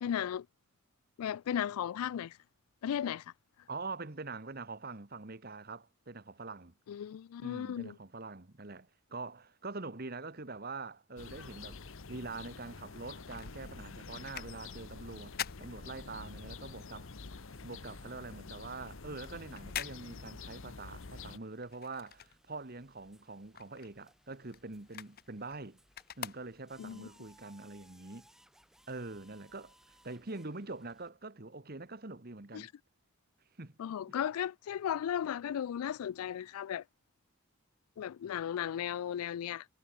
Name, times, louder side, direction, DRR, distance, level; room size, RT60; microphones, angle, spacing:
voice 1, 0.0-0.5 1.2-2.4 2.8-3.3 6.9-8.0 26.8-27.1 32.5-32.7 33.8-36.8 38.0-39.7, left 9 dB, 85° left, 0.3 m, -35 dB
voice 2, 3.7-6.7 7.4-11.8 12.1-15.3 15.6-17.1 17.6-25.8 26.2-28.3 28.9-32.7 33.6-33.8 34.1-34.2, right 3 dB, 45° right, 1.3 m, -44 dB
sound 1, 11.2-21.4, left 4 dB, 65° left, 1.0 m, -48 dB
sound 2, 13.0-16.6 16.9-22.9 23.2-27.0 27.5-27.6, left 10 dB, 45° left, 0.7 m, -46 dB
sound 3, 14.6-31.1, right 1 dB, ahead, 1.3 m, -67 dB
head